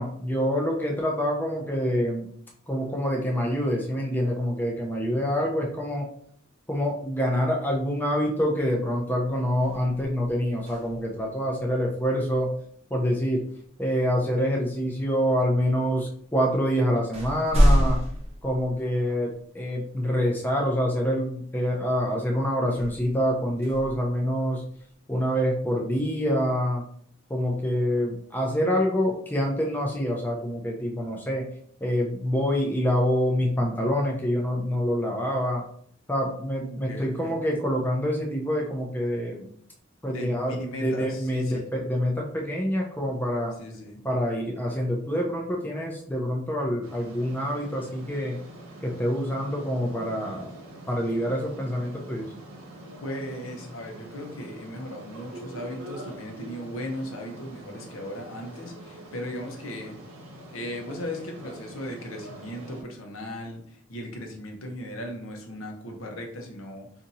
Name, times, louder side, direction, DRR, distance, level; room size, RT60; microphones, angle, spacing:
voice 1, 0.0-2.3 2.7-6.1 6.7-12.5 12.9-13.4 13.8-18.0 18.4-24.6 25.1-26.8 27.3-31.5 31.8-35.6 36.1-39.5 40.0-43.5 44.0-48.4 48.8-50.5 50.9-52.3, equal, 10° left, -1 dB, 0.4 m, -26 dB
sound 1, 9.6-11.3 13.4-13.6 14.4-15.2 16.0-16.1 16.5-19.4 19.9-20.0 22.6-24.8, equal, 30° right, 0.6 m, -27 dB
voice 2, 36.6-37.4 40.1-41.7 43.6-44.0 53.0-60.0 60.5-66.9, equal, 80° left, 2 dB, 0.8 m, -37 dB
sound 2, 46.8-62.8, right 1 dB, 85° right, 0.8 m, -44 dB
2.7 x 2.5 x 4.0 m, 0.62 s
head